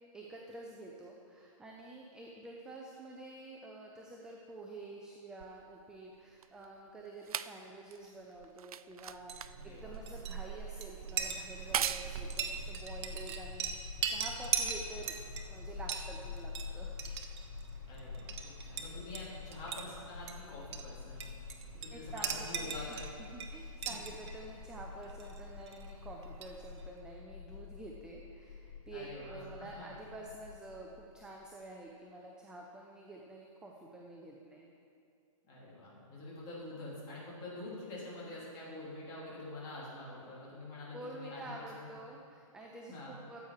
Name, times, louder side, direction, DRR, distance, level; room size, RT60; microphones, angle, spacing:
voice 1, 0.1-15.2 15.5-17.0 21.9-34.7 40.9-43.4, right 2 dB, 5° right, -1 dB, 0.5 m, -49 dB
sound 1, 5.4-14.0 14.9-15.0, right 9 dB, 85° right, 0.4 m, -42 dB
Chink clink, 9.1-26.9, right 6 dB, 50° right, 1.1 m, -41 dB
voice 2, 9.5-10.0 17.8-21.3 21.8-23.1 23.8-23.9 28.9-29.9 35.4-41.9 42.9-43.1, left 2 dB, 25° left, -6 dB, 3.3 m, -46 dB
sound 2, 12.6-31.4, left 6 dB, 85° left, 0.9 m, -48 dB
14.0 x 8.1 x 4.9 m, 2.4 s
hypercardioid pair, 150°, 18 cm